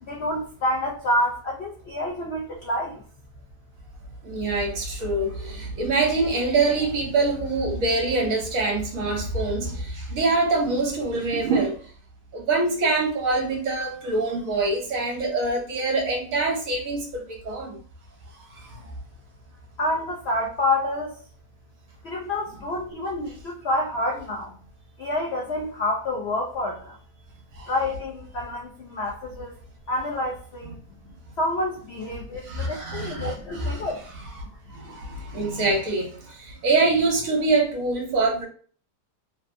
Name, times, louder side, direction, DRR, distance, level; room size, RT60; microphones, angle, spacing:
voice 1, 0.0-3.0 19.8-21.2 22.0-24.6 25.0-27.0 27.7-29.5 29.9-30.8 31.4-34.0 35.1-35.2, left 1 dB, 70° left, -1 dB, 0.6 m, -28 dB
voice 2, 4.2-11.8 12.3-17.8 18.6-18.8 27.6-27.7 32.4-33.8 34.7-38.5, right 3 dB, 60° right, 0 dB, 1.1 m, -25 dB
3.2 x 2.6 x 2.5 m, 0.44 s
omnidirectional pair, 1.8 m